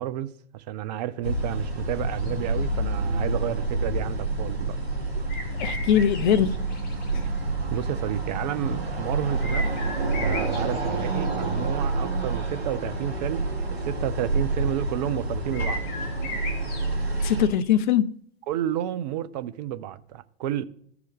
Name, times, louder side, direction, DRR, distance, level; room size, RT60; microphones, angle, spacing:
voice 1, 0.0-4.8 7.2-7.3 7.7-9.7 10.1-15.8 18.5-20.6, right 12 dB, 40° right, 0.5 m, -31 dB
sound 1, 1.2-17.5, right 2 dB, 70° right, 2.0 m, -28 dB
sound 2, 2.1-2.8 5.3-7.1 7.4-7.5 7.8-7.9 9.4-11.7 12.0-12.1 15.5-17.8, left 2 dB, 30° left, 1.6 m, -37 dB
voice 2, 5.6-6.6 17.2-18.2, left 9 dB, 45° left, 0.5 m, -21 dB
14.0 x 4.7 x 3.4 m
figure-of-eight pair, 95°, 33 cm